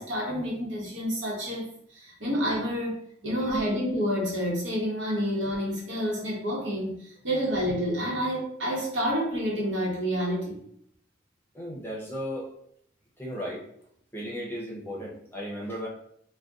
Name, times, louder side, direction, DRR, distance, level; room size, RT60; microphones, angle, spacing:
voice 1, 0.0-1.6 1.9-3.0 3.2-10.6, equal, 85° right, -3 dB, 1.1 m, -29 dB
voice 2, 11.5-12.5 13.2-13.6 14.1-15.9, equal, 10° left, -3 dB, 0.6 m, -35 dB
2.5 x 2.2 x 3.5 m, 0.68 s
head